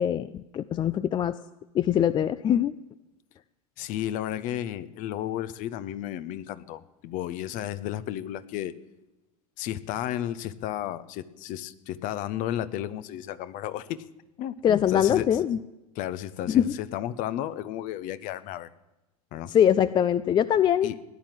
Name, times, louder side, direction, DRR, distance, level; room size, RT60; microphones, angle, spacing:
voice 1, 0.0-1.4 1.7-2.7 14.6-15.6 16.5-16.7 19.5-20.9, left 9 dB, 25° left, 15 dB, 0.4 m, -23 dB
voice 2, 3.8-8.8 9.6-14.1 14.4-15.4 16.0-18.7 19.3-19.5 20.8-21.0, left 12 dB, 45° left, 15 dB, 0.9 m, -33 dB
17.0 x 10.5 x 7.6 m, 1.0 s
figure-of-eight pair, 80°, 20 cm